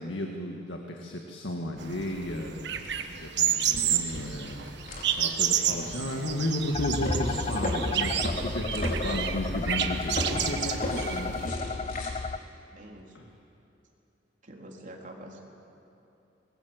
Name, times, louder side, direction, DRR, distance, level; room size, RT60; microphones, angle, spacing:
voice 1, 0.0-2.5 3.1-4.7 5.2-11.3 13.1-13.3, left 1 dB, 70° left, 2 dB, 1.9 m, -33 dB
sound 1, 1.8-11.5, right 9 dB, 60° right, 1.5 m, -31 dB
sound 2, 2.8-2.9 3.5-12.1, left 1 dB, 45° left, 4.5 m, -35 dB
sound 3, 6.7-12.4, left 4 dB, 30° left, 0.5 m, -34 dB
voice 2, 12.7-13.2 14.4-15.4, right 1 dB, 40° right, -1 dB, 3.6 m, -46 dB
25.5 x 21.0 x 8.1 m, 2.9 s
head